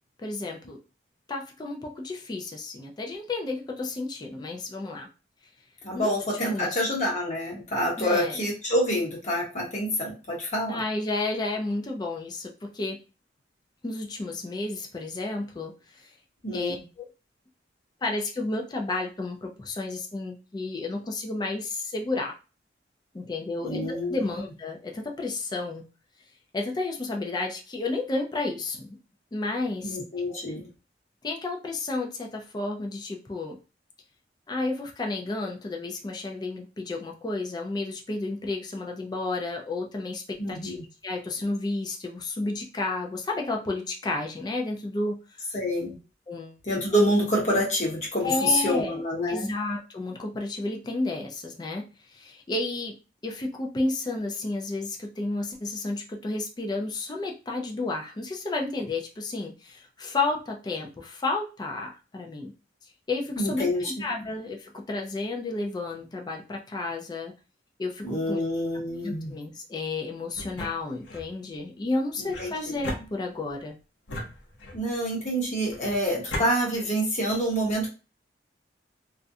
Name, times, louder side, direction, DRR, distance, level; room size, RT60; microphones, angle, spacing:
voice 1, 0.2-0.8 1.3-5.1 5.9-6.2 6.4-6.7 8.0-8.4 10.7-13.0 13.8-16.1 16.5-17.1 18.0-22.3 23.1-25.8 26.5-29.0 29.3-30.0 30.3-30.4 31.2-33.6 34.5-45.2 45.5-45.6 46.3-46.6 48.2-49.0 49.3-51.8 52.1-52.9 53.2-62.5 63.1-67.3 67.8-68.4 69.0-73.8, left 2 dB, 25° left, 1 dB, 0.4 m, -32 dB
voice 2, 5.8-10.8 16.4-16.8 23.6-24.4 29.8-30.7 40.4-40.8 45.5-46.0 46.7-49.5 63.4-63.8 68.0-69.3 72.2-72.8 74.7-77.9, equal, 40° left, -2 dB, 1.0 m, -27 dB
sound 1, 70.3-71.3 72.3-73.6 74.1-75.0 75.7-76.5, left 1 dB, 85° left, 0.6 m, -37 dB
2.4 x 2.1 x 2.6 m, 0.32 s
head